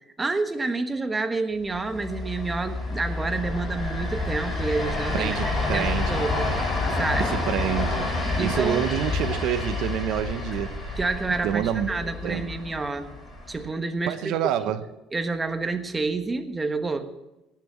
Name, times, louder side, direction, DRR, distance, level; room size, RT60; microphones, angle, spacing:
voice 1, 0.2-6.7 6.9-7.4 8.4-8.9 11.0-13.1 13.5-14.4 14.6-14.8 15.1-17.1, right 3 dB, 15° right, 8 dB, 1.3 m, -29 dB
sound 1, 1.7-13.7, left 2 dB, 15° left, 7.1 m, -29 dB
voice 2, 5.1-6.2 7.2-11.0 11.4-12.6 14.1-14.8, right 11 dB, 65° right, 11 dB, 0.8 m, -28 dB
18.5 x 7.4 x 7.5 m, 0.98 s
cardioid pair, 120°, 0 cm